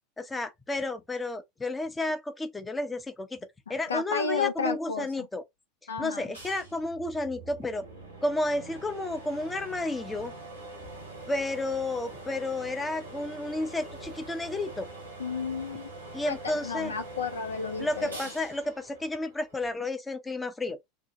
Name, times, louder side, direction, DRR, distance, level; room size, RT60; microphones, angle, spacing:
voice 1, 0.2-5.4 6.0-7.9 8.2-10.3 11.3-14.9 16.1-16.9 17.8-20.8, left 2 dB, 15° left, 0.6 m, -32 dB
voice 2, 3.9-5.3 5.9-6.2 15.2-15.9 16.3-18.2, left 5 dB, 75° left, 0.4 m, -32 dB
sound 1, 6.3-19.8, right 2 dB, 90° right, 1.3 m, -44 dB
2.8 x 2.1 x 2.7 m
figure-of-eight pair, 80°, 0 cm